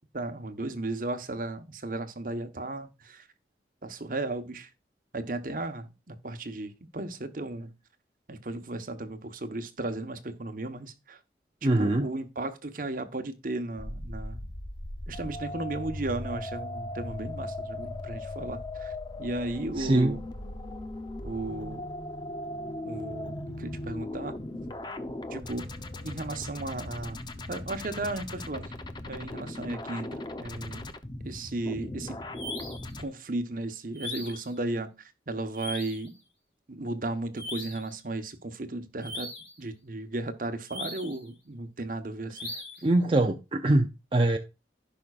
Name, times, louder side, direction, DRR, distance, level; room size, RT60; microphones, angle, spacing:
voice 1, 0.1-3.2 3.8-4.7 5.1-7.7 8.3-11.2 11.6-14.5 15.1-18.9 19.2-20.2 21.2-21.8 22.8-24.4 25.3-25.7 26.0-27.2 27.5-28.7 29.1-30.8 31.2-32.2 33.0-36.1 36.7-39.3 39.6-42.5, right 2 dB, 50° right, 1.1 m, -35 dB
voice 2, 11.6-12.0 19.8-20.1 42.8-44.4, right 2 dB, 30° right, 0.6 m, -23 dB
sound 1, 13.8-33.1, left 1 dB, 25° left, 0.7 m, -38 dB
sound 2, 32.3-32.9 33.9-34.5 35.5-36.1 37.4-37.9 39.0-39.6 40.7-41.2 42.3-42.9, left 2 dB, 5° left, 2.8 m, -39 dB
15.5 x 5.6 x 2.4 m
head